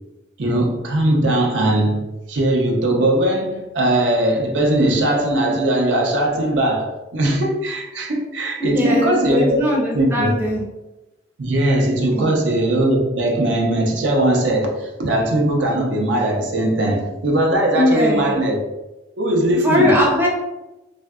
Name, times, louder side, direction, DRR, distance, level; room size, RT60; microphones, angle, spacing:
voice 1, 0.4-2.0 2.3-9.6 9.9-10.3 11.4-18.6 19.2-20.0, right 1 dB, 75° right, 0 dB, 0.6 m, -19 dB
voice 2, 8.6-10.6 12.1-12.4 17.7-18.4 19.6-20.3, left 1 dB, 10° right, -3 dB, 0.5 m, -20 dB
3.4 x 2.5 x 2.2 m, 1.0 s
head